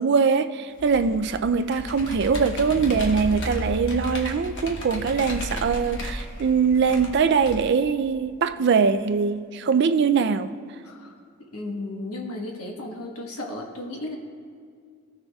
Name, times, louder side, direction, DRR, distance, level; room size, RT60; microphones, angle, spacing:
voice 1, 0.0-10.5, right 5 dB, 50° right, 0.3 m, -22 dB
Computer keyboard, 0.8-7.5, left 1 dB, 55° left, 1.1 m, -35 dB
sound 1, 2.7-8.0, equal, 40° left, 2.4 m, -38 dB
voice 2, 10.8-11.2 11.5-14.2, left 2 dB, 80° left, 1.3 m, -34 dB
16.5 x 6.6 x 2.3 m
head